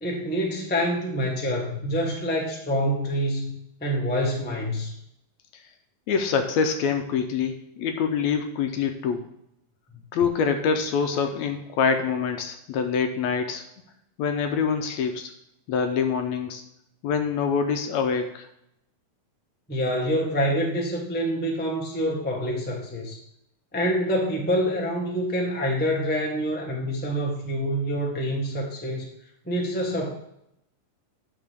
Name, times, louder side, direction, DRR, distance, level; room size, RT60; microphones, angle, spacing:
voice 1, 0.0-3.5 3.8-4.9 19.7-23.2 23.7-29.0 29.4-30.1, equal, 15° left, -2 dB, 0.4 m, -26 dB
voice 2, 6.1-9.3 10.1-13.6 14.2-15.3 15.7-16.6 17.0-18.5, left 6 dB, 75° left, 6 dB, 1.8 m, -25 dB
10.5 x 6.5 x 3.6 m, 0.78 s
omnidirectional pair, 3.5 m